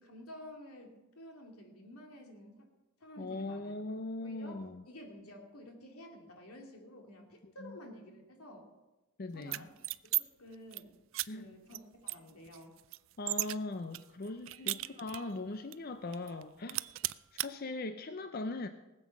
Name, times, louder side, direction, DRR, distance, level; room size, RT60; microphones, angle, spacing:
voice 1, 0.0-2.6 3.0-3.7 4.2-4.6 4.9-8.7 9.3-9.7 10.2-11.0 11.3-11.8 12.0-12.7 14.5-14.8, left 1 dB, 90° left, 1 dB, 2.9 m, -51 dB
voice 2, 3.2-4.8 7.4-7.8 9.2-9.7 11.3-11.5 13.2-16.9 17.3-18.7, left 2 dB, 45° left, 9 dB, 0.5 m, -40 dB
sound 1, 9.4-10.2 10.5-10.8 11.1-11.3 11.7-11.8 12.1-13.6 13.9-15.3 15.7-15.8 16.1-16.4 16.7-17.5, right 19 dB, 65° right, 0.4 m, -35 dB
19.5 x 7.8 x 6.0 m, 1.0 s
head